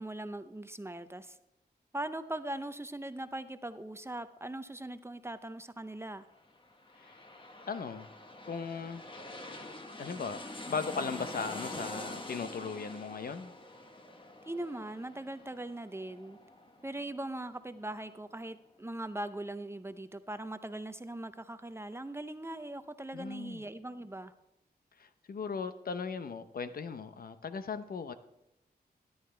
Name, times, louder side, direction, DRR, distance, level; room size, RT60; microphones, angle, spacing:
voice 1, 0.0-1.4 1.9-6.3 14.4-16.4 16.8-24.3, right 1 dB, 15° right, 11 dB, 0.6 m, -40 dB
sound 1, 6.6-17.9 18.3-18.4, left 1 dB, 30° left, 1.3 m, -46 dB
voice 2, 7.7-8.1 8.4-9.0 10.0-13.5 23.1-23.6 25.0-28.1, left 5 dB, 65° left, 11 dB, 0.8 m, -38 dB
14.0 x 10.5 x 3.3 m, 0.87 s
wide cardioid pair, 80°, 17 cm